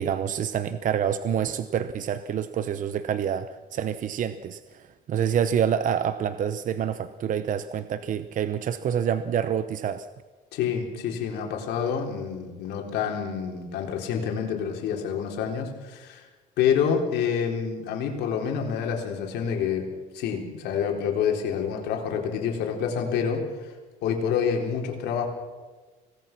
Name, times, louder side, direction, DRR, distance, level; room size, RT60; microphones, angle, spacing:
voice 1, 0.0-10.1, right 8 dB, 50° right, 12 dB, 0.8 m, -27 dB
voice 2, 10.5-16.2 16.6-19.9 20.1-23.7 24.0-25.3, left 7 dB, 85° left, 2 dB, 3.9 m, -27 dB
25.0 x 18.5 x 6.0 m, 1.3 s
cardioid pair, 110°, 17 cm